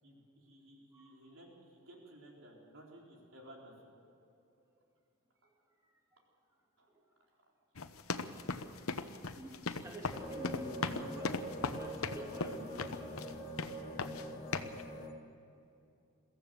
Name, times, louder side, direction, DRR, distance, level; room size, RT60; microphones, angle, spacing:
voice 1, 0.0-3.8 6.8-6.9, right 1 dB, 70° right, -1 dB, 4.2 m, -56 dB
voice 2, 5.4-6.2 6.9-7.0 9.2-13.5, right 1 dB, 15° right, -1 dB, 2.5 m, -50 dB
sound 1, 7.8-13.3 13.6-14.3 14.5-14.8, left 4 dB, 85° left, 1.0 m, -38 dB
sound 2, 10.1-15.1, equal, 25° left, 2.2 m, -44 dB
22.5 x 15.0 x 7.8 m, 2.7 s
head